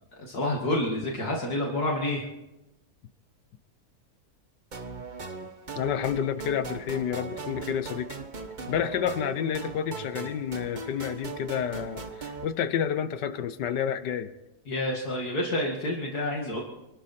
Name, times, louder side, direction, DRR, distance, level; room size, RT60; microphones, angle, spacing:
voice 1, 0.2-2.3 14.7-16.6, left 1 dB, 65° left, -1 dB, 2.7 m, -28 dB
sound 1, 4.7-12.5, right 4 dB, 30° right, 1.1 m, -39 dB
voice 2, 5.8-8.2 8.7-14.3, left 8 dB, 85° left, 12 dB, 1.6 m, -29 dB
25.5 x 12.5 x 4.3 m, 0.94 s
omnidirectional pair, 1.8 m